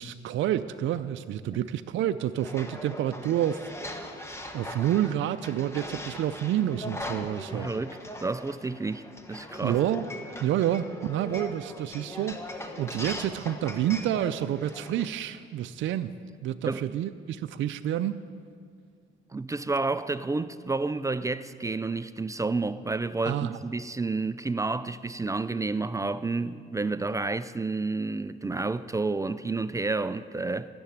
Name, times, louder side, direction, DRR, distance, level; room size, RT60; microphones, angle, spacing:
voice 1, 0.0-3.6 4.0-4.1 4.5-7.7 9.6-10.1 10.4-16.1 16.4-18.2 23.3-23.6, right 11 dB, 75° right, 0.5 m, -29 dB
sound 1, 2.4-15.0, left 1 dB, 15° left, 1.3 m, -40 dB
voice 2, 7.5-9.8 16.6-16.9 19.3-30.7, right 3 dB, 15° right, 0.4 m, -30 dB
13.5 x 6.9 x 9.7 m
cardioid pair, 90°, 20 cm